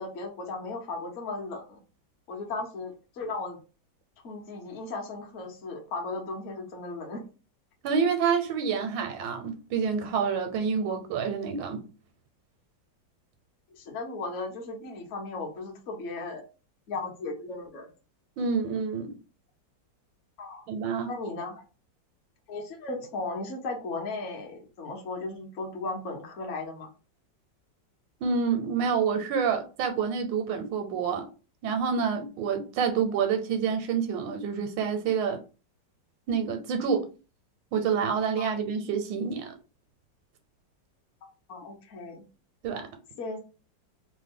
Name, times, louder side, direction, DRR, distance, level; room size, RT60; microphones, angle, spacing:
voice 1, 0.0-1.8 2.3-3.6 4.2-7.2 13.7-16.4 16.9-17.9 20.4-20.7 21.1-21.6 22.5-26.9 38.4-38.5 41.5-42.2 43.2-43.4, left 3 dB, 60° left, 0.8 m, -36 dB
voice 2, 7.8-11.9 18.4-19.2 20.7-21.1 28.2-31.3 31.6-35.4 36.3-37.1 37.7-39.5 42.6-42.9, right 6 dB, 85° right, 1.3 m, -28 dB
3.2 x 2.1 x 3.5 m
omnidirectional pair, 2.0 m